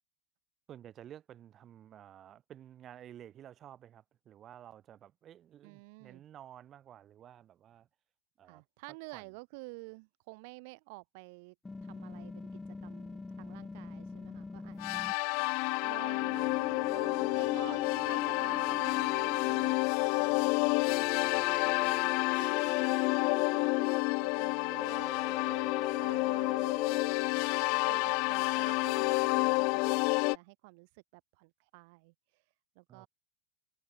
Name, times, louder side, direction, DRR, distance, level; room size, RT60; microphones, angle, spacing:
voice 1, 0.7-7.9 8.4-8.6 9.1-9.3 20.2-20.4 32.9-33.1, right 10 dB, 30° right, 2.1 m, -52 dB
voice 2, 5.6-6.2 8.4-11.5 11.8-15.2 15.8-17.8 18.1-22.1 22.4-22.5 22.8-23.9 24.2-25.7 26.0-27.5 27.9-28.0 28.3-32.4 32.7-33.1, right 28 dB, 55° right, 1.2 m, -51 dB
sound 1, 11.6-15.1 16.2-19.7 20.9-24.0 24.7-27.1, left 3 dB, 10° left, 1.8 m, -44 dB
sound 2, 14.8-30.4, left 34 dB, 50° left, 0.5 m, -29 dB
supercardioid pair, 145°, 0 cm